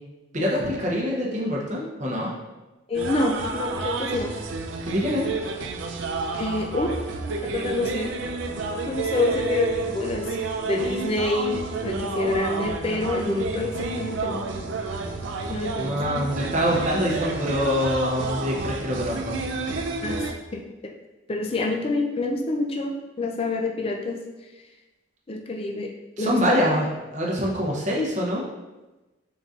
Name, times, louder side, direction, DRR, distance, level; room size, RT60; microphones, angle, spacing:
voice 1, 0.3-2.3 4.9-5.3 15.8-19.3 26.2-28.5, equal, 35° right, -3 dB, 0.7 m, -25 dB
voice 2, 2.9-4.3 6.4-6.9 7.5-8.1 8.9-10.3 10.7-14.4 15.5-16.3 20.0-20.6 21.3-24.2 25.3-25.9 26.2-26.7, left 2 dB, 30° left, 2 dB, 0.3 m, -27 dB
sound 1, 2.9-20.3, right 3 dB, 70° right, 0.4 m, -30 dB
4.0 x 3.7 x 2.4 m, 1.1 s
head